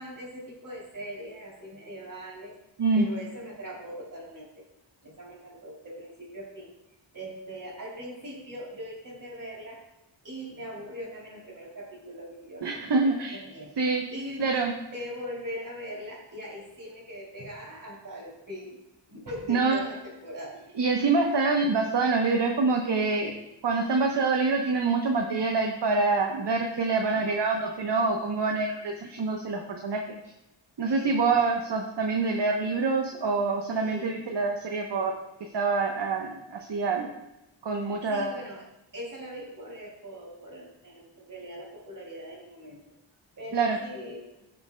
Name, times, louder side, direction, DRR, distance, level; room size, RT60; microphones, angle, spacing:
voice 1, 0.0-2.5 2.9-4.6 5.0-6.7 7.1-9.8 10.2-13.7 14.1-18.8 19.1-20.7 30.8-31.4 33.7-34.1 38.1-42.8 43.4-44.3, equal, 45° right, -3 dB, 3.1 m, -41 dB
voice 2, 12.6-13.4 13.8-14.0 14.4-14.7 19.5-19.8 20.8-23.3 23.6-30.0 30.8-35.1 35.5-37.1 37.6-38.4 43.5-43.8, right 4 dB, 65° right, 2 dB, 1.0 m, -26 dB
15.0 x 6.8 x 2.2 m, 0.93 s
wide cardioid pair, 95°, 46 cm